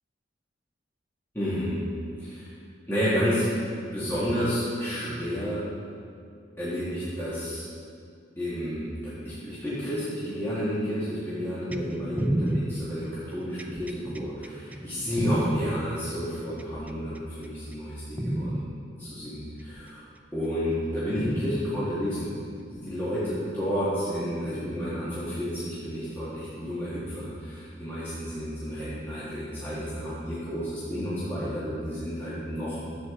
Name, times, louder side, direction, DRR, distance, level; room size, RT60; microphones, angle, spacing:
voice 1, 1.3-1.8 2.2-2.5 2.9-3.4 3.9-5.6 6.6-7.6 8.4-20.0 20.3-22.3 22.6-32.9, equal, 10° left, -11 dB, 1.6 m, -31 dB
sound 1, 11.7-15.6 16.6-17.2 17.7-17.9 18.2-18.6 19.8-19.9 21.2-21.6 22.8-22.9, right 1 dB, 10° right, 0.3 m, -30 dB
11.0 x 7.8 x 3.7 m, 2.3 s
head